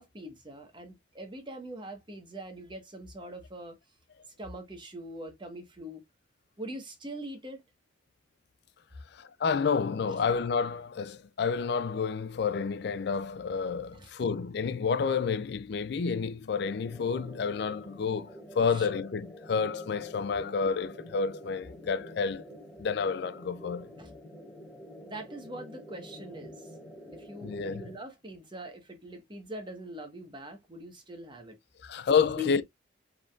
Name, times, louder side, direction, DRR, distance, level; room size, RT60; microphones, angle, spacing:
voice 1, 0.0-3.8 4.4-6.0 6.6-7.6 13.9-14.1 18.7-18.9 24.0-24.1 25.0-26.7 27.1-31.6 32.4-32.6, equal, 25° right, 1.3 m, -42 dB
voice 2, 9.1-18.3 18.6-22.4 22.8-23.9 27.4-27.8 31.8-32.6, left 5 dB, 60° left, 0.4 m, -29 dB
sound 1, 16.6-27.9, equal, 5° left, 1.8 m, -48 dB
5.4 x 3.8 x 2.4 m
head